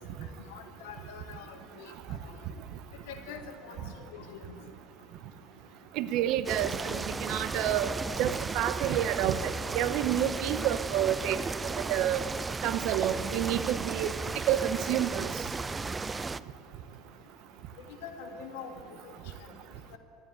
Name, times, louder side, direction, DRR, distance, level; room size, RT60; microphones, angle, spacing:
voice 1, 0.5-2.3 3.1-4.4 6.9-7.0 7.5-7.6 18.0-18.7 19.9-20.0, left 7 dB, 85° left, 4 dB, 1.7 m, -45 dB
voice 2, 6.0-11.4 11.8-12.2 12.6-14.1 14.5-15.3, right 11 dB, 60° right, 13 dB, 0.7 m, -29 dB
sound 1, 6.4-16.4, right 4 dB, 20° right, 0.3 m, -35 dB
12.5 x 9.6 x 8.9 m, 2.6 s
supercardioid pair, 120°, 0 cm